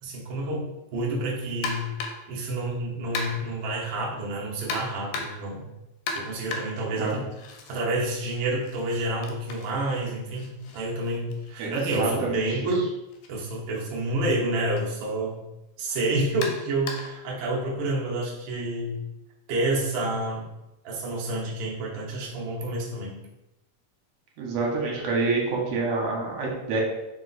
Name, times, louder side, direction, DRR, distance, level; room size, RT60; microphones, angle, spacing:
voice 1, 0.0-1.9 2.3-5.7 6.1-7.2 7.7-12.9 13.3-15.4 15.8-19.0 19.5-20.5 20.8-23.2, right 2 dB, 85° right, -4 dB, 1.0 m, -29 dB
sound 1, 1.6-2.3 3.2-3.6 4.7-5.5 6.1-7.8 8.2-12.0 13.1-13.3 13.7-13.8 14.8-14.9 16.4-17.2, left 3 dB, 90° left, 2.1 m, -36 dB
voice 2, 11.6-12.4 24.4-26.8, right 3 dB, 70° right, -2 dB, 1.9 m, -27 dB
4.7 x 2.3 x 3.9 m, 0.94 s
omnidirectional pair, 3.5 m